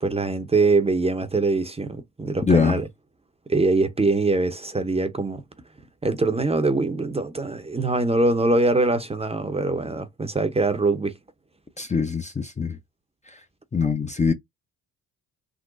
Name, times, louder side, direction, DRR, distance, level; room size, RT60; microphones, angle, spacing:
voice 1, 0.0-2.9 3.5-5.4 6.0-11.1, right 3 dB, 15° right, 0.7 m, -23 dB
voice 2, 2.5-2.8 11.8-12.8 13.7-14.3, left 5 dB, 20° left, 0.6 m, -22 dB
3.8 x 2.1 x 2.5 m
hypercardioid pair, 60°, 39 cm